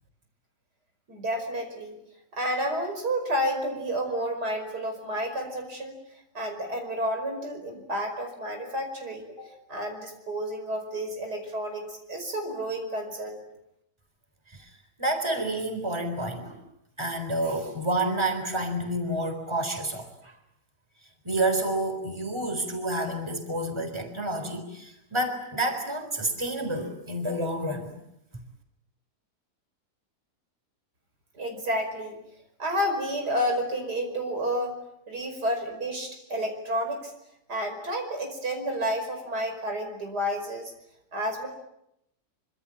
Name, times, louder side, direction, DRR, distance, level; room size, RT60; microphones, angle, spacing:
voice 1, 1.1-2.0 2.3-6.0 6.3-13.4 31.4-32.2 32.6-34.8 35.1-37.1 37.5-40.7 41.1-41.5, equal, 80° right, 4 dB, 5.7 m, -30 dB
voice 2, 15.0-16.6 17.0-20.3 21.2-27.9, right 1 dB, 15° right, 6 dB, 3.9 m, -29 dB
25.5 x 25.5 x 8.6 m, 0.81 s
omnidirectional pair, 1.7 m